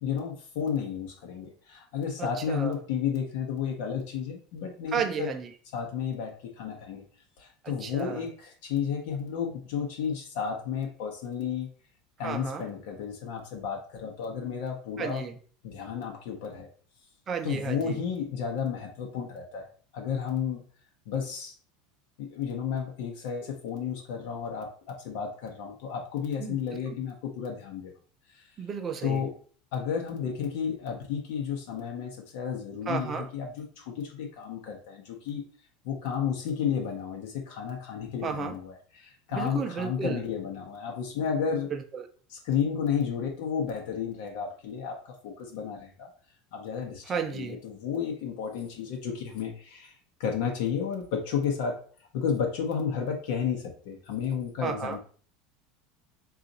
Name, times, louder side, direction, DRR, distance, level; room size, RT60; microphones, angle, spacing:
voice 1, 0.0-5.3 5.7-7.0 7.4-11.7 12.2-15.2 15.6-16.7 17.4-19.7 19.9-20.6 21.1-21.5 22.2-27.9 28.3-28.5 29.0-29.3 29.7-35.4 35.8-41.7 42.3-46.1 46.5-51.8 52.1-55.0, left 7 dB, 70° left, 0.8 m, -32 dB
voice 2, 2.2-2.7 4.9-5.5 7.6-8.3 12.2-12.7 15.0-15.3 17.3-18.0 26.4-26.8 28.6-29.2 32.9-33.3 38.2-38.6 39.3-40.2 41.7-42.1 47.1-47.6 54.6-55.0, right 6 dB, 20° right, 0.4 m, -33 dB
3.9 x 2.4 x 3.9 m
supercardioid pair, 165°, 0 cm